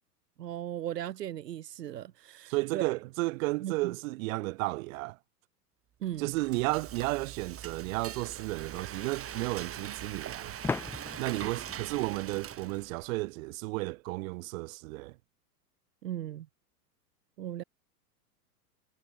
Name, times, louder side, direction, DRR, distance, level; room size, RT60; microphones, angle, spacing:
voice 1, 0.4-2.9 3.6-4.0 6.0-6.3 11.4-11.5 16.0-16.5 17.4-17.6, right 12 dB, 80° right, 1.5 m, -37 dB
voice 2, 2.5-5.2 6.2-10.6 11.2-15.1, right 22 dB, 55° right, 1.2 m, -33 dB
Frying (food), 6.0-13.1, right 10 dB, 30° right, 5.4 m, -42 dB
sound 1, 10.6-13.3, left 4 dB, 5° left, 0.4 m, -39 dB
hypercardioid pair, 105°, 48 cm